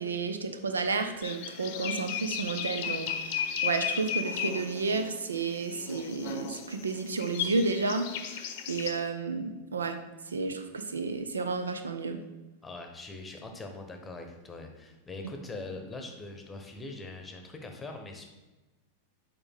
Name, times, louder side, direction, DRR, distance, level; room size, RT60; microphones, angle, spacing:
voice 1, 0.0-10.0 10.3-12.2, right 4 dB, 70° right, 8 dB, 0.5 m, -32 dB
sound 1, 1.2-8.9, left 8 dB, 45° left, 0.7 m, -35 dB
voice 2, 12.6-18.3, left 3 dB, 15° left, 4 dB, 1.0 m, -42 dB
6.9 x 5.1 x 3.6 m, 1.1 s
figure-of-eight pair, 90°, 0 cm